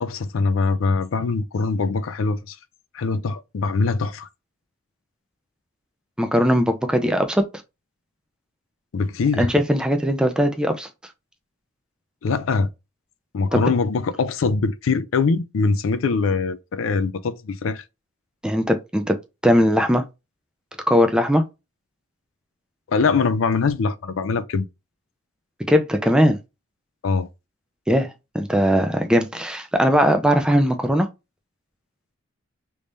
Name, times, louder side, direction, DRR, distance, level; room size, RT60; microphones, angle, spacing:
voice 1, 0.0-2.6 2.9-4.3 8.9-9.5 12.2-12.7 13.3-17.8 22.9-24.7 27.0-27.3, left 4 dB, 80° left, 0.4 m, -22 dB
voice 2, 6.2-7.5 9.4-10.9 13.5-13.6 18.4-19.2 19.4-20.1 20.9-21.4 25.7-26.4 27.9-31.1, equal, 5° right, 0.4 m, -19 dB
3.5 x 3.2 x 2.6 m
head